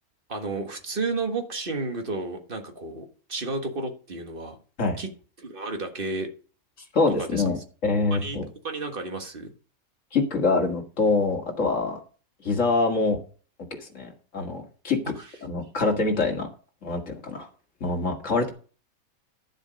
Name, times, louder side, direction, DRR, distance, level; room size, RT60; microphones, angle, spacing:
voice 1, 0.3-4.6 5.0-5.1 5.4-6.3 7.2-7.4 8.1-9.5, right 3 dB, 40° right, 5 dB, 1.6 m, -32 dB
voice 2, 6.9-8.5 10.1-12.0 12.4-13.2 13.8-15.0 15.4-16.5 16.8-17.5 17.8-18.5, left 3 dB, 55° left, 1 dB, 2.4 m, -25 dB
11.5 x 7.4 x 5.1 m, 0.39 s
omnidirectional pair, 1.6 m